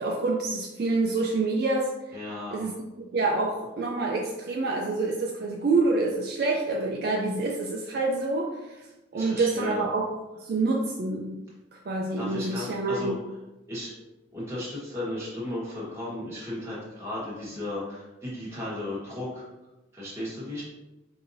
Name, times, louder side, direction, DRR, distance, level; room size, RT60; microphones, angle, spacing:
voice 1, 0.0-2.2 2.5-2.7 3.0-8.9 9.1-10.0 10.4-11.4 11.7-13.1, right 3 dB, 50° right, -1 dB, 0.4 m, -27 dB
voice 2, 2.1-2.7 9.1-9.8 12.2-13.2 13.7-14.0 14.3-19.5 19.9-20.6, left 1 dB, 15° right, -7 dB, 1.3 m, -35 dB
5.4 x 2.7 x 2.7 m, 1.1 s
head